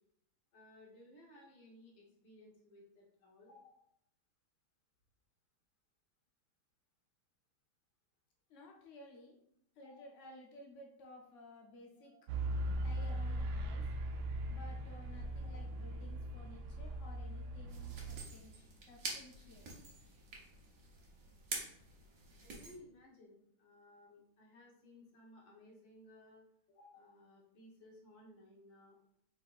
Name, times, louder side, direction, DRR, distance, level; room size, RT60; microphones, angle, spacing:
voice 1, 0.5-3.9 9.8-10.1 12.0-12.2 14.0-14.1 15.4-15.6 22.4-29.0, left 1 dB, 65° left, -3 dB, 1.9 m, -60 dB
voice 2, 8.5-9.4 9.8-12.1 12.8-13.8 14.5-19.7, left 2 dB, 85° left, -1 dB, 0.6 m, -56 dB
sound 1, 12.3-18.2, right 1 dB, 90° right, 1.5 m, -39 dB
sound 2, 17.7-22.7, right 3 dB, 50° right, 1.1 m, -47 dB
4.7 x 4.0 x 2.5 m, 0.73 s
omnidirectional pair, 2.3 m